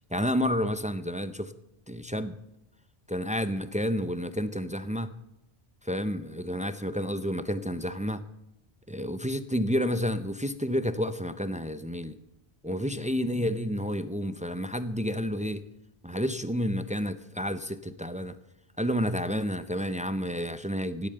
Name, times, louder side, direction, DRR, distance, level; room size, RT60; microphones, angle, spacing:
voice 1, 0.1-1.5 1.9-2.3 3.1-5.1 5.8-8.2 8.9-12.2 12.6-15.6 16.0-18.4 18.8-21.1, equal, 10° right, 12 dB, 0.3 m, -30 dB
16.5 x 8.8 x 6.8 m, 0.87 s
omnidirectional pair, 1.0 m